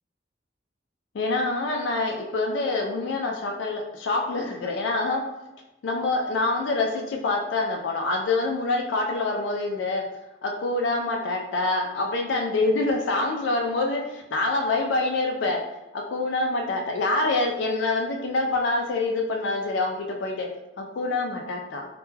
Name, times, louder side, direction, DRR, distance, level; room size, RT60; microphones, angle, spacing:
voice 1, 1.1-5.2 5.8-10.0 10.4-15.6 15.9-20.5 20.8-21.9, left 2 dB, 75° left, 1 dB, 0.4 m, -26 dB
2.2 x 2.2 x 3.1 m, 0.93 s
head